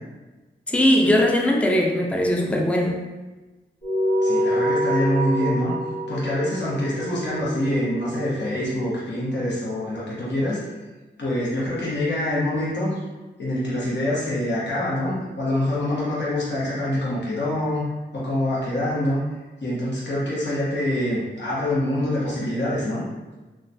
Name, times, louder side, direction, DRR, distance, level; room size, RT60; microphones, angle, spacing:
voice 1, 0.7-3.0, left 1 dB, 5° left, 0 dB, 0.4 m, -20 dB
sound 1, 3.8-8.6, equal, 35° left, 1.2 m, -26 dB
voice 2, 4.2-5.7 6.1-10.6 11.2-13.0 13.4-17.9 18.1-19.2 19.6-23.0, left 1 dB, 65° left, -8 dB, 0.9 m, -25 dB
3.1 x 2.3 x 2.6 m, 1.2 s
wide cardioid pair, 65°, 19 cm